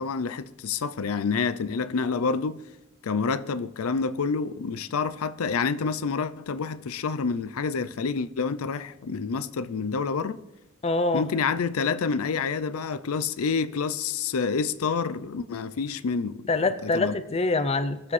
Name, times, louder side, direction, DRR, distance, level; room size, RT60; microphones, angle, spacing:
voice 1, 0.0-2.6 3.0-10.4 11.1-16.4 16.8-17.2, left 5 dB, 75° left, 0.5 m, -28 dB
voice 2, 10.8-11.2 16.5-18.1, left 3 dB, 30° left, 0.5 m, -25 dB
20.5 x 7.3 x 3.3 m
head